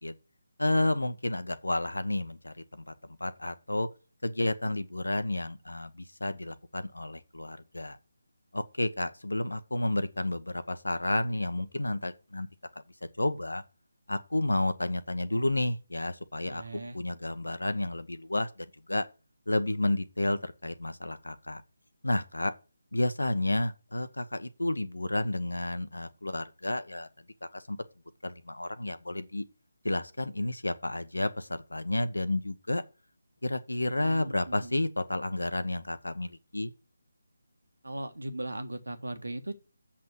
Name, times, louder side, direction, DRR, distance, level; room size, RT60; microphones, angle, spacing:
voice 1, 0.6-3.9 4.2-8.0 8.5-12.5 13.2-13.6 14.1-19.1 19.5-21.6 22.0-22.5 22.9-27.1 27.5-27.8 28.2-29.4 29.8-32.8 33.4-36.7, left 1 dB, 75° left, 1.1 m, -31 dB
voice 2, 16.4-17.0 34.0-34.8 37.8-39.6, right 1 dB, 75° right, 1.6 m, -38 dB
7.7 x 5.9 x 6.3 m
figure-of-eight pair, 155°, 0 cm